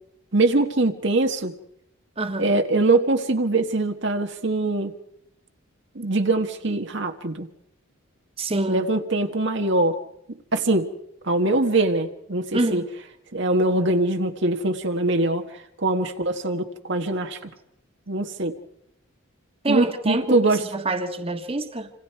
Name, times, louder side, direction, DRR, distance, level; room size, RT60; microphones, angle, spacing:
voice 1, 0.3-1.5 2.4-4.9 5.9-7.5 8.7-10.0 10.5-10.9 11.2-12.8 13.3-17.5 18.1-18.5 19.7-20.6, right 2 dB, 55° right, 1.5 m, -23 dB
voice 2, 2.2-2.6 8.4-8.8 12.5-12.9 19.6-21.9, right 2 dB, 25° right, 1.6 m, -26 dB
27.5 x 26.5 x 4.7 m
head